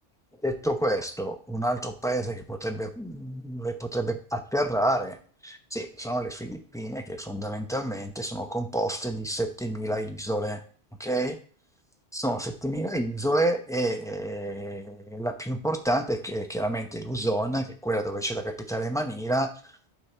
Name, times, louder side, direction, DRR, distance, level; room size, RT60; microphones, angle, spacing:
voice 1, 0.4-5.2 5.4-10.6 11.0-11.4 12.1-19.5, right 1 dB, 5° left, 4 dB, 0.6 m, -29 dB
8.4 x 4.7 x 4.3 m, 0.43 s
omnidirectional pair, 1.2 m